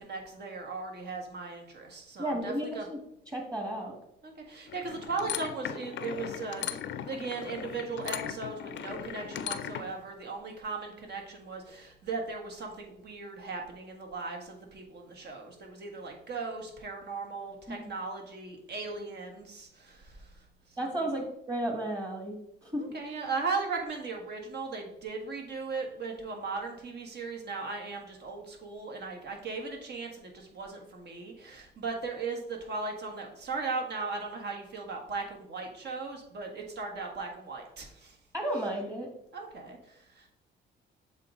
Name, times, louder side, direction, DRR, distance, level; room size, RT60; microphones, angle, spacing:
voice 1, 0.0-2.8 4.2-20.3 22.9-38.2 39.3-40.3, right 4 dB, 55° right, 2 dB, 1.6 m, -37 dB
voice 2, 2.2-3.0 3.3-3.9 17.7-17.9 20.8-22.8 38.3-39.1, right 1 dB, 20° right, 2 dB, 1.6 m, -33 dB
sound 1, 4.7-10.0, left 10 dB, 65° left, 0.5 m, -38 dB
7.3 x 3.8 x 3.8 m, 0.74 s
cardioid pair, 90°, 20 cm